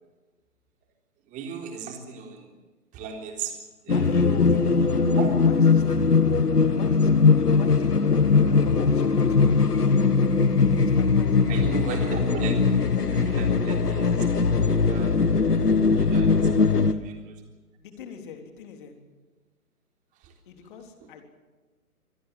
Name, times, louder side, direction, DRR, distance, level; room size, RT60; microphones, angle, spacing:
voice 1, 1.3-2.5 2.9-3.6 3.9-4.1 4.9-5.3 11.5-15.2 15.9-16.3 17.3-17.4 20.2-20.3, right 6 dB, 15° right, 3 dB, 3.7 m, -36 dB
sound 1, 3.9-16.9, left 4 dB, 85° left, 1.7 m, -20 dB
voice 2, 3.9-4.5 5.1-6.4 6.8-9.6 10.7-11.4 12.4-12.7 16.3-17.2 17.8-19.0 20.4-21.2, left 5 dB, 35° left, 5 dB, 3.7 m, -42 dB
26.0 x 18.5 x 7.5 m, 1.3 s
figure-of-eight pair, 140°, 45 cm